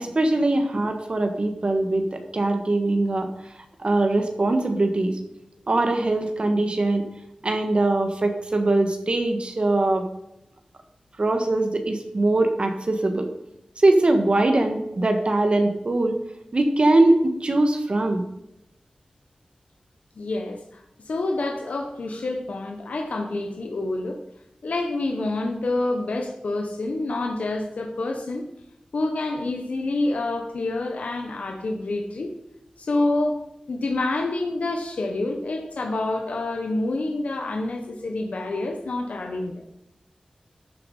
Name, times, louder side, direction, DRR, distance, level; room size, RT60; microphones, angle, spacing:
voice 1, 0.0-3.3 3.8-5.2 5.7-7.0 7.4-10.1 11.2-13.3 13.8-16.2 16.5-18.2, right 2 dB, 50° right, 5 dB, 1.5 m, -22 dB
voice 2, 20.2-24.2 24.6-28.4 28.9-32.3 32.8-39.6, left 2 dB, 90° left, 3 dB, 1.2 m, -27 dB
13.0 x 7.0 x 5.5 m, 0.84 s
wide cardioid pair, 75°, 2 cm